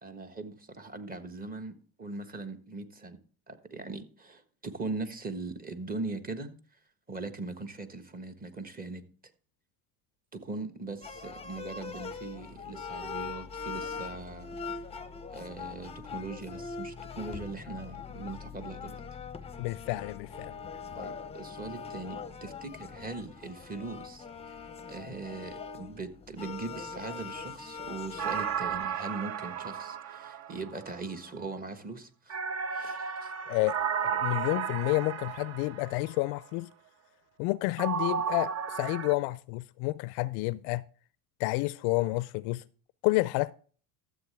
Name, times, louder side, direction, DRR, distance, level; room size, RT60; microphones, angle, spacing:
voice 1, 0.0-3.2 3.5-6.5 7.1-9.0 10.3-14.5 15.3-19.0 21.0-24.6 24.9-32.4 32.7-33.3, right 3 dB, 20° right, 1.4 m, -40 dB
sound 1, 11.0-28.8, left 5 dB, 15° left, 0.8 m, -42 dB
voice 2, 19.6-20.5 33.5-33.8 34.0-36.7 37.4-40.8 41.4-42.6 43.0-43.5, left 21 dB, 60° left, 0.5 m, -30 dB
sound 2, 28.2-31.0 32.3-36.1 37.8-39.1, right 7 dB, 35° right, 0.8 m, -33 dB
13.0 x 7.7 x 3.4 m
hypercardioid pair, 95°, 45 cm